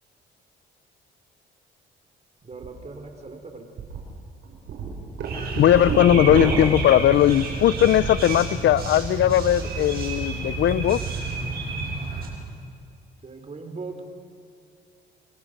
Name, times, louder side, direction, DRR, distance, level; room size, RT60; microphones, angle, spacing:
voice 1, 2.4-3.8 13.2-14.2, right 3 dB, 35° right, 5 dB, 4.1 m, -39 dB
sound 1, 2.5-2.7 3.1-3.2 3.8-4.0 4.4-8.2 8.6-9.0, right 5 dB, 75° right, 5.6 m, -29 dB
sound 2, 5.3-12.3, right 3 dB, 50° right, 7.0 m, -30 dB
voice 2, 5.5-11.0, left 11 dB, 70° left, 19 dB, 0.7 m, -19 dB
29.5 x 23.0 x 6.8 m, 2.4 s
cardioid pair, 90°, 20 cm